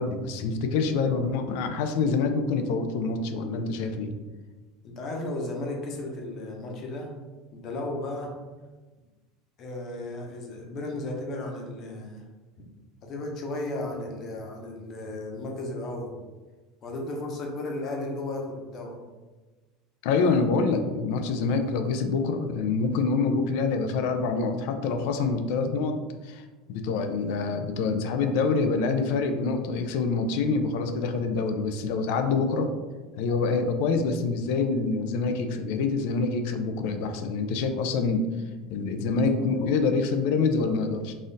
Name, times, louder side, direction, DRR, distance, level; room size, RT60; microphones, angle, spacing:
voice 1, 0.0-4.1 20.0-32.7 33.2-38.3 38.7-41.1, left 4 dB, 70° left, 7 dB, 0.5 m, -26 dB
voice 2, 4.8-7.1 7.5-8.3 9.6-12.2 13.0-16.2 16.8-19.0 39.1-39.2, left 2 dB, 40° left, 1 dB, 0.9 m, -34 dB
4.0 x 2.5 x 3.9 m, 1.3 s
supercardioid pair, 145°, 0 cm